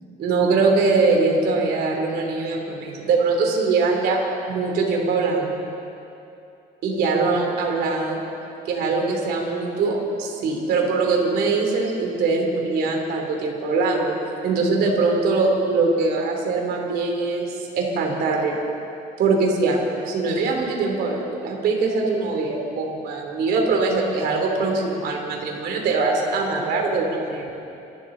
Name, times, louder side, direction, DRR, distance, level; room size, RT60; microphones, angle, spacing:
voice 1, 0.2-4.2 4.5-5.6 6.8-8.2 8.7-14.2 14.4-18.6 19.2-19.8 20.1-27.5, right 3 dB, 70° right, 1 dB, 2.9 m, -22 dB
25.0 x 12.5 x 3.9 m, 2.7 s
cardioid pair, 110°, 17 cm